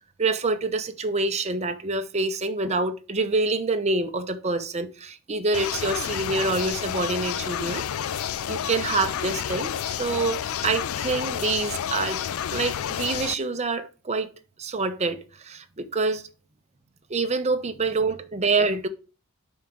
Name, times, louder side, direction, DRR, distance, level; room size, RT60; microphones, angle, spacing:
voice 1, 0.2-7.9 8.1-12.2 12.5-14.3 14.6-16.3 17.1-18.9, right 3 dB, 30° right, 0.8 m, -26 dB
sound 1, 5.5-13.3, left 9 dB, 65° left, 0.4 m, -30 dB
5.7 x 4.8 x 5.7 m
head